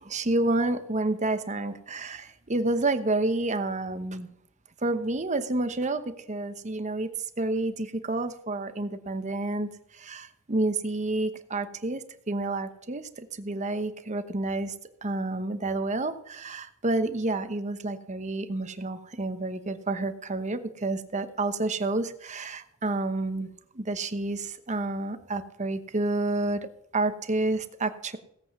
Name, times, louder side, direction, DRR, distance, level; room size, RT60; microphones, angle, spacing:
voice 1, 0.0-4.3 4.8-7.1 7.4-14.7 15.0-26.7 26.9-28.2, right 2 dB, 35° right, 10 dB, 1.0 m, -29 dB
17.5 x 7.9 x 6.1 m, 0.75 s
head